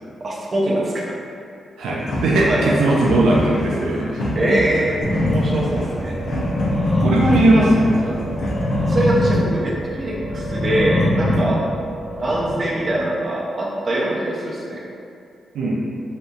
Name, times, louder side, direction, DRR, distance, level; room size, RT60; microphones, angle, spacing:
voice 1, 0.2-0.9 2.5-2.6 4.3-5.0 5.3-6.1 8.9-11.6 12.2-14.8, right 1 dB, 35° right, -5 dB, 0.5 m, -23 dB
voice 2, 1.8-4.3 7.0-8.2 11.4-11.6 15.5-15.8, right 1 dB, 90° right, -4 dB, 0.3 m, -18 dB
sound 1, 2.0-8.9, left 1 dB, 75° left, 0.5 m, -26 dB
sound 2, 5.0-13.0, left 1 dB, 10° right, 1.0 m, -23 dB
2.7 x 2.4 x 2.3 m, 2.4 s
cardioid pair, 90°, 0 cm